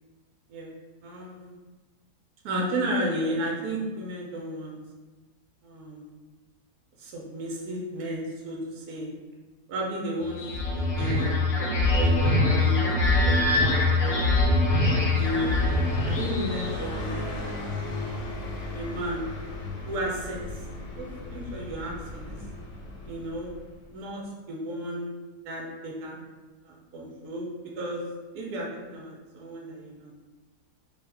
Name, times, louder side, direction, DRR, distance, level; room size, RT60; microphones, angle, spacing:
voice 1, 1.0-1.6 2.4-4.8 5.6-6.1 7.0-9.2 9.7-10.4 10.7-14.5 15.1-17.8 18.7-19.2 19.9-20.5 20.9-22.4 23.0-23.5 23.9-24.2 24.5-25.1 25.4-26.3 26.6-27.5 27.8-28.0 28.3-30.1, right 1 dB, 75° right, -2 dB, 1.0 m, -33 dB
sound 1, 10.2-16.9, left 2 dB, 65° left, 0.6 m, -23 dB
Car passing by, 13.3-23.8, left 2 dB, 80° left, 1.1 m, -37 dB
2.6 x 2.3 x 3.3 m, 1.3 s
omnidirectional pair, 1.7 m